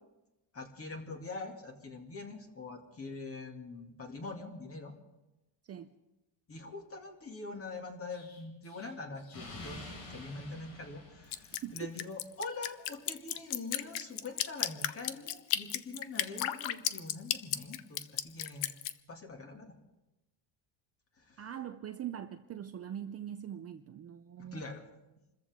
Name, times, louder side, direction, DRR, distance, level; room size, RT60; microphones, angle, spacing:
voice 1, 0.5-4.9 6.5-18.7 19.1-19.7 21.2-21.4 24.4-24.8, left 3 dB, 30° left, 3 dB, 2.4 m, -44 dB
Explosion, 8.1-12.0, left 2 dB, 85° left, 5.7 m, -49 dB
Drip, 11.3-18.9, left 13 dB, 65° left, 0.8 m, -34 dB
voice 2, 11.6-12.1 21.4-24.6, right 10 dB, 30° right, 8 dB, 0.5 m, -42 dB
27.5 x 14.5 x 3.6 m, 0.99 s
cardioid pair, 145°, 49 cm